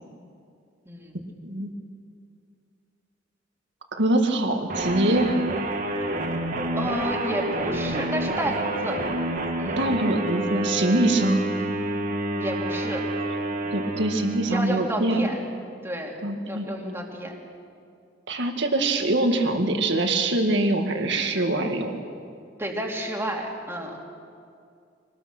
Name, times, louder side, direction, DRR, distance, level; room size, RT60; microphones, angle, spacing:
voice 1, 0.8-1.3 6.7-9.0 9.6-9.8 12.4-13.0 13.6-13.7 14.4-15.4 15.8-16.2 16.5-17.3 22.6-24.0, right 1 dB, 15° right, 0 dB, 2.8 m, -30 dB
voice 2, 3.9-5.4 9.8-11.4 13.7-15.3 16.2-16.7 18.3-22.0, right 2 dB, 65° right, 4 dB, 2.0 m, -23 dB
sound 1, 4.7-14.9, right 1 dB, 45° right, 2.0 m, -28 dB
24.0 x 19.5 x 6.2 m, 2.4 s
head